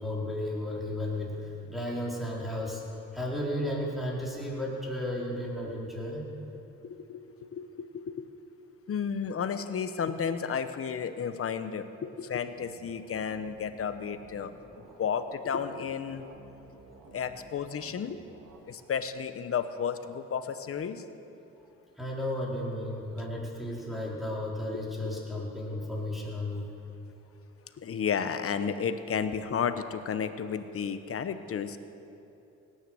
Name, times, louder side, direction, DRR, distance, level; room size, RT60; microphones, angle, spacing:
voice 1, 0.0-6.3 22.0-26.7, left 1 dB, ahead, -4 dB, 4.3 m, -34 dB
voice 2, 6.8-7.2 7.5-8.3 8.9-14.5 15.0-16.2 17.1-18.2 18.7-21.0 27.8-31.8, left 7 dB, 50° left, 10 dB, 1.1 m, -32 dB
sound 1, 12.6-15.0 15.6-18.6, right 3 dB, 80° right, 2.4 m, -53 dB
17.5 x 10.5 x 7.8 m, 2.9 s
cardioid pair, 90°, 30 cm